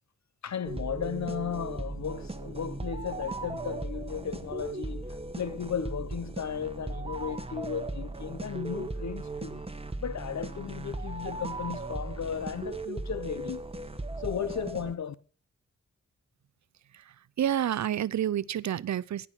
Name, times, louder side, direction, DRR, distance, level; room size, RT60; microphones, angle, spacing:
voice 1, 0.4-5.1 5.4-9.6 10.0-13.6 14.2-15.1, left 7 dB, 65° left, 0.9 m, -35 dB
sound 1, 0.6-14.9, right 2 dB, 20° right, 1.3 m, -37 dB
voice 2, 17.4-19.3, right 10 dB, 70° right, 0.5 m, -29 dB
16.0 x 6.1 x 6.3 m
cardioid pair, 50°, 30 cm